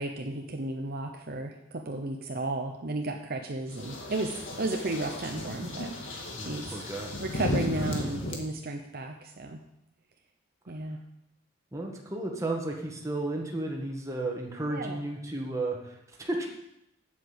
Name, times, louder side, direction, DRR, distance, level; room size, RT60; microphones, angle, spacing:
voice 1, 0.0-5.9 6.4-6.7 7.2-9.6 10.7-11.0 14.7-15.0, right 2 dB, 50° right, 3 dB, 0.8 m, -34 dB
sound 1, 3.7-8.4, left 1 dB, 70° left, 1.9 m, -34 dB
voice 2, 6.3-7.1 11.7-16.5, right 2 dB, 15° right, 0 dB, 1.6 m, -33 dB
8.5 x 7.9 x 7.0 m, 0.82 s
head